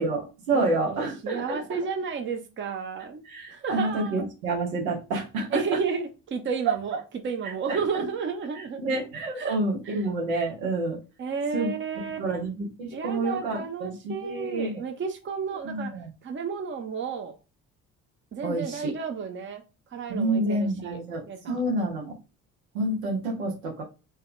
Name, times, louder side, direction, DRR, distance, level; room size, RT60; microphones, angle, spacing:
voice 1, 0.0-1.8 3.2-5.8 6.7-6.8 7.7-8.0 8.5-11.0 11.5-11.7 12.2-14.8 15.6-16.1 18.4-18.9 20.1-22.2 22.7-23.8, right 2 dB, 75° right, 1 dB, 1.0 m, -28 dB
voice 2, 0.5-4.2 5.5-7.0 7.2-9.0 9.4-9.6 9.9-10.0 11.2-12.2 12.9-15.9 16.2-17.3 18.3-19.6 19.9-21.0 21.3-21.6, right 5 dB, 30° right, 5 dB, 0.7 m, -32 dB
3.4 x 2.3 x 3.2 m, 0.29 s
figure-of-eight pair, 45°, 41 cm